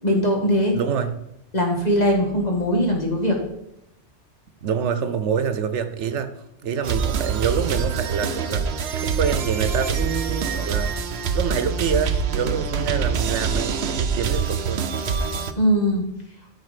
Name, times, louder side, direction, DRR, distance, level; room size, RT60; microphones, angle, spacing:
voice 1, 0.0-0.8 1.5-3.4 15.6-16.1, equal, 40° left, 1 dB, 1.9 m, -20 dB
voice 2, 0.7-1.1 4.6-6.3 6.6-10.9 11.3-14.9, right 7 dB, 90° right, 11 dB, 1.1 m, -26 dB
sound 1, 6.8-15.5, right 6 dB, 70° right, 1.0 m, -25 dB
12.5 x 4.7 x 5.0 m, 0.81 s
omnidirectional pair, 1.2 m